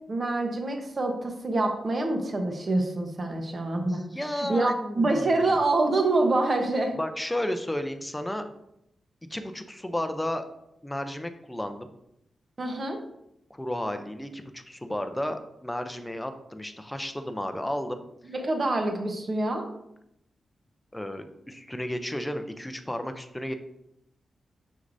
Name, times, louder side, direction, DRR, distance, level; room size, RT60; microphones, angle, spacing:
voice 1, 0.1-4.0 4.4-6.9 12.6-13.0 18.2-19.7, right 2 dB, 35° right, 3 dB, 1.0 m, -26 dB
voice 2, 3.9-5.6 7.0-8.4 9.3-10.4 10.8-11.9 13.5-18.0 20.9-23.5, left 1 dB, 5° left, 7 dB, 0.6 m, -33 dB
6.4 x 6.4 x 2.7 m, 0.80 s
wide cardioid pair, 150°, 0 cm